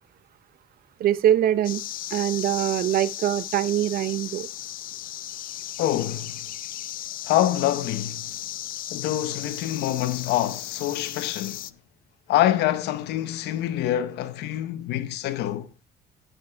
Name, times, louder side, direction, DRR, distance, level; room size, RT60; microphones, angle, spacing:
voice 1, 1.0-1.8 2.1-4.5, right 11 dB, 60° right, 0.7 m, -23 dB
sound 1, 1.6-11.7, left 13 dB, 55° left, 0.5 m, -36 dB
voice 2, 5.8-6.5 7.2-8.3 8.9-11.7 12.3-15.7, left 13 dB, 85° left, 1.1 m, -26 dB
13.5 x 7.5 x 3.5 m
cardioid pair, 110°, 17 cm